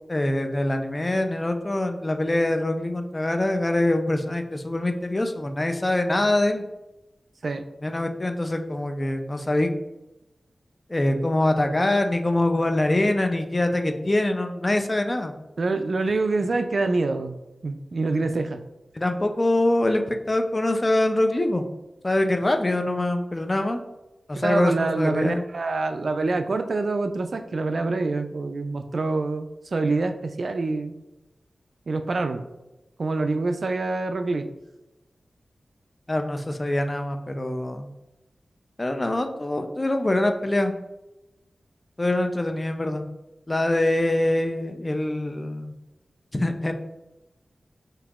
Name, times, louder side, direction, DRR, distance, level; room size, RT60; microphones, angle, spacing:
voice 1, 0.1-6.6 7.8-9.7 10.9-15.3 19.0-21.6 22.0-23.8 24.3-25.4 36.1-37.9 38.8-40.7 42.0-43.0 43.5-45.7 46.3-46.7, left 1 dB, 30° left, 6 dB, 0.4 m, -24 dB
voice 2, 15.6-17.3 17.6-18.6 24.4-30.9 31.9-32.4 33.0-34.4, right 3 dB, 65° right, 8 dB, 0.3 m, -26 dB
5.2 x 2.8 x 2.4 m, 0.97 s
cardioid pair, 55°, 0 cm